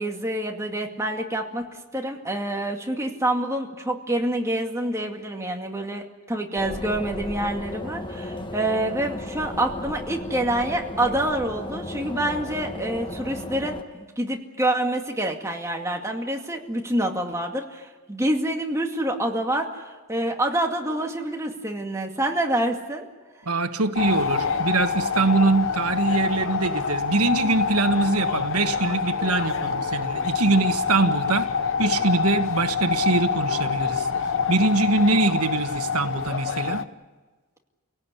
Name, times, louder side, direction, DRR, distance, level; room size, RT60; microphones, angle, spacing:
voice 1, 0.0-1.6 1.9-19.8 20.1-23.0, right 1 dB, 15° right, 2 dB, 2.2 m, -27 dB
sound 1, 6.6-13.8, left 2 dB, 20° left, 1.4 m, -35 dB
voice 2, 23.4-31.5 31.8-36.9, right 3 dB, 90° right, 7 dB, 1.5 m, -23 dB
sound 2, 24.0-36.8, left 6 dB, 65° left, 0.9 m, -26 dB
29.5 x 18.0 x 8.4 m, 1.3 s
head